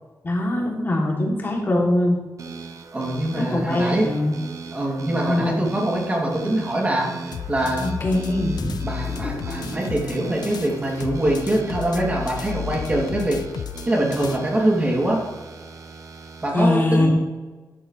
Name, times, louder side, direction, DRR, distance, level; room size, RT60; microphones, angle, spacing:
voice 1, 0.2-2.2 3.3-4.3 5.3-5.7 7.8-8.7 16.5-17.1, left 1 dB, 30° left, -1 dB, 2.7 m, -22 dB
sound 1, 2.4-16.5, right 4 dB, 50° right, 1.1 m, -38 dB
voice 2, 2.9-4.1 4.7-7.1 7.5-7.8 8.8-13.4 13.9-15.2 16.4-17.1, right 1 dB, 20° right, -2 dB, 2.6 m, -23 dB
sound 2, 7.3-10.7 11.0-14.4, left 8 dB, 85° left, 0.5 m, -33 dB
sound 3, 8.9-11.2 12.5-12.9 14.1-14.4, left 2 dB, 45° left, 2.5 m, -38 dB
12.5 x 11.0 x 3.2 m, 1.3 s
wide cardioid pair, 150°, 7 cm